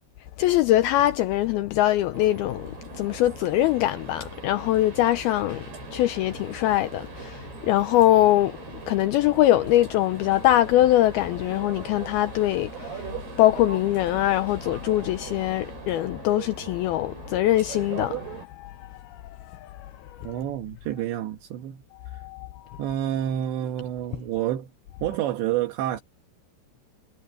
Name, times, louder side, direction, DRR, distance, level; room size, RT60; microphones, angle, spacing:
voice 1, 0.4-8.6 8.9-19.9 22.1-22.8 25.1-25.2, left 14 dB, 85° left, 2.2 m, -23 dB
sound 1, 2.1-18.5, right 5 dB, 60° right, 8.0 m, -40 dB
voice 2, 20.2-22.3 22.8-24.7 25.0-26.0, right 12 dB, 75° right, 3.6 m, -29 dB
omnidirectional pair, 5.2 m